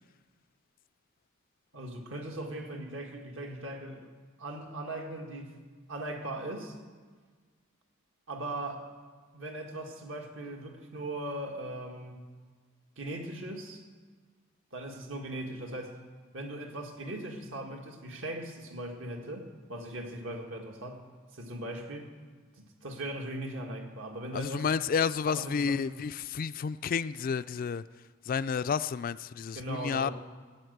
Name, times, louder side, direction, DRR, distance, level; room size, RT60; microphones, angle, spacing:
voice 1, 1.7-4.1 4.4-5.6 5.9-6.8 8.3-8.9 9.3-12.3 13.0-13.8 14.7-16.0 16.3-21.0 21.3-22.1 22.6-24.7 25.3-25.9 29.5-30.1, right 1 dB, 65° right, 3 dB, 2.0 m, -39 dB
voice 2, 24.3-27.8 28.3-30.1, left 6 dB, 45° left, 15 dB, 0.3 m, -30 dB
15.5 x 9.2 x 8.0 m, 1.5 s
head